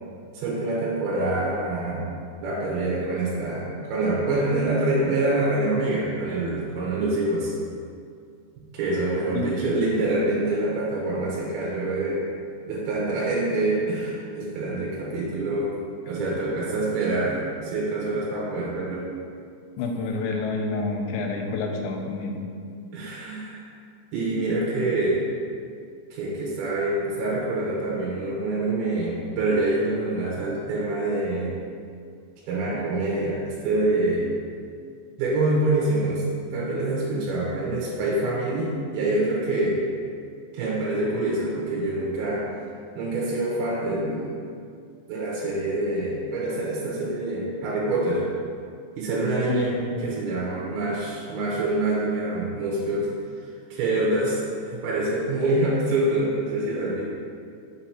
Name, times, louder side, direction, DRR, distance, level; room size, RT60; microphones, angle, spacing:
voice 1, 0.3-2.1 2.4-7.6 8.7-12.3 12.6-15.7 16.1-19.1 22.9-23.6 24.1-25.3 26.1-31.5 32.5-34.3 35.2-36.2 36.5-39.8 40.5-42.5 43.0-44.4 45.1-48.2 49.0-49.8 50.0-53.1 53.7-54.4 54.7-57.0, right 2 dB, 70° right, -5 dB, 2.6 m, -26 dB
voice 2, 9.3-9.7 19.8-22.4 49.5-50.1, left 3 dB, 85° left, 2 dB, 2.8 m, -28 dB
6.6 x 2.9 x 5.6 m, 2.3 s
omnidirectional pair, 5.0 m